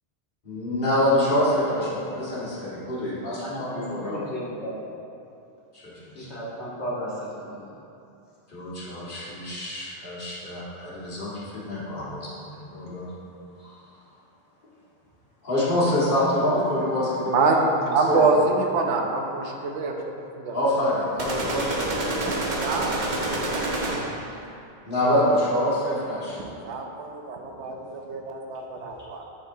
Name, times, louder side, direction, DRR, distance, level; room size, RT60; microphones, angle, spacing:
voice 1, 0.4-4.2 6.0-6.3 8.5-13.1 13.6-13.7 15.4-17.6 17.9-18.2 20.5-22.4 22.6-23.0 24.8-26.4, left 1 dB, 50° left, -9 dB, 1.8 m, -26 dB
voice 2, 3.4-5.0 6.1-7.7 28.5-28.6, equal, 75° left, -7 dB, 1.7 m, -34 dB
voice 3, 17.2-20.6 22.3-23.0 26.6-29.2, right 3 dB, 85° right, 2 dB, 1.0 m, -25 dB
sound 1, 21.2-24.3, right 2 dB, 45° right, 0.8 m, -28 dB
10.0 x 4.2 x 2.7 m, 2.6 s
omnidirectional pair, 1.2 m